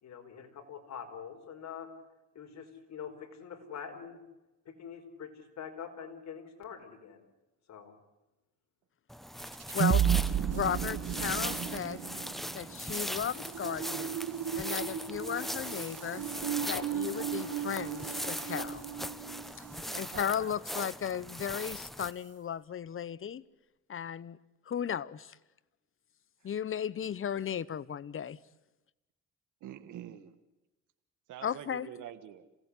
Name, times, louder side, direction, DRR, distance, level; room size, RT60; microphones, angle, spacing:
voice 1, 0.0-1.9 2.3-4.2 4.6-7.2 7.7-7.9, left 7 dB, 60° left, 4 dB, 4.7 m, -45 dB
sound 1, 9.1-22.1, equal, ahead, 1.2 m, -40 dB
sound 2, 9.4-19.9, right 9 dB, 55° right, 2.1 m, -34 dB
voice 2, 9.7-10.0 10.5-12.0 12.5-14.2 14.5-16.3 16.7-18.8 19.6-19.7 20.0-23.4 23.9-24.4 24.7-25.4 26.4-28.4 31.4-31.9, left 8 dB, 45° left, 19 dB, 0.9 m, -35 dB
voice 3, 19.9-20.5 26.4-26.5 29.6-30.3 31.3-32.5, right 11 dB, 80° right, 10 dB, 1.6 m, -46 dB
27.5 x 17.5 x 9.8 m, 1.0 s
cardioid pair, 90°, 30 cm